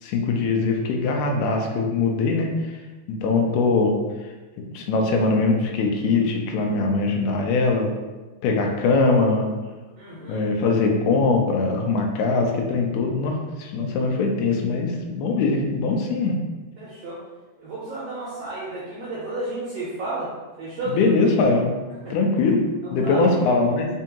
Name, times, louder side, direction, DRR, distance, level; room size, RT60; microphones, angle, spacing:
voice 1, 0.0-2.8 3.1-4.0 4.7-7.9 8.4-9.5 10.3-16.4 20.9-21.7 22.1-22.6 22.9-23.9, left 3 dB, 80° left, 1 dB, 1.8 m, -21 dB
voice 2, 10.0-10.5 16.2-16.3 16.8-17.2 17.6-20.3 20.6-21.0 22.0-22.2 22.8-23.3, right 2 dB, 75° right, -9 dB, 1.5 m, -32 dB
5.2 x 2.4 x 2.8 m, 1.2 s
omnidirectional pair, 3.9 m